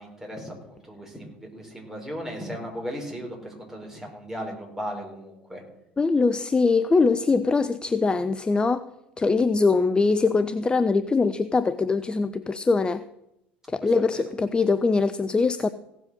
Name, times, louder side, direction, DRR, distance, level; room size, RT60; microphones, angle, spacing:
voice 1, 0.0-5.6 13.8-14.2, equal, 5° right, 4.8 m, -36 dB
voice 2, 6.0-8.9 9.2-13.0 13.7-15.7, left 4 dB, 15° left, 0.5 m, -22 dB
16.5 x 7.6 x 6.5 m
figure-of-eight pair, 65°, 6 cm